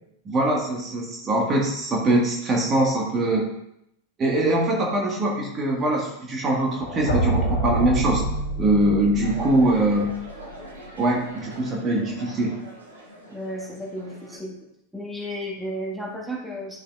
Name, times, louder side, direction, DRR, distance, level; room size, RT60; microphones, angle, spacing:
voice 1, 0.2-3.4 4.2-8.2 8.6-10.2 11.0-12.6, right 1 dB, 25° right, -2 dB, 1.6 m, -22 dB
sound 1, 6.7-10.7, right 1 dB, 60° left, 1.6 m, -27 dB
sound 2, 9.2-14.4, right 1 dB, 75° right, 1.9 m, -43 dB
voice 2, 13.3-14.6 14.9-16.8, equal, 5° right, -3 dB, 1.6 m, -33 dB
10.5 x 6.9 x 2.4 m, 0.79 s
figure-of-eight pair, 90°, 0 cm